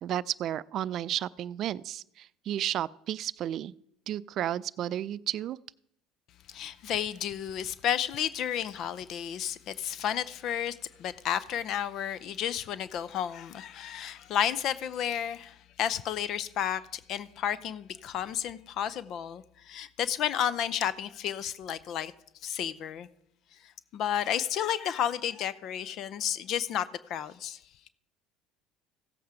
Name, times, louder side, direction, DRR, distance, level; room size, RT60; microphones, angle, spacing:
voice 1, 0.0-3.7 4.1-5.6, right 11 dB, 55° right, 0.4 m, -32 dB
voice 2, 6.5-22.1 22.4-23.1 23.9-27.6, left 9 dB, 60° left, 0.5 m, -32 dB
15.5 x 7.9 x 4.9 m
hypercardioid pair, 80°, 0 cm